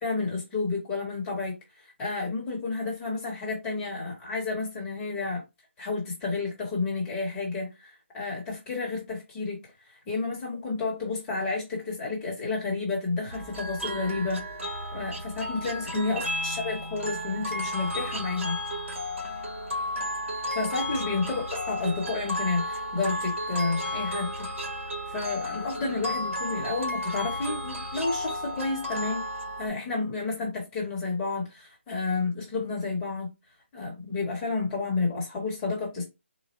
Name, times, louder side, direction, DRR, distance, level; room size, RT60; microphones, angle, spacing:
voice 1, 0.0-5.4 5.8-9.6 9.9-14.4 14.9-18.6 20.5-24.5 25.1-29.2 29.6-33.3 33.7-36.0, left 3 dB, 10° left, 0.9 m, -31 dB
sound 1, 13.3-29.7, equal, 80° right, 1.3 m, -33 dB
4.1 x 2.1 x 3.0 m
hypercardioid pair, 170°, 7 cm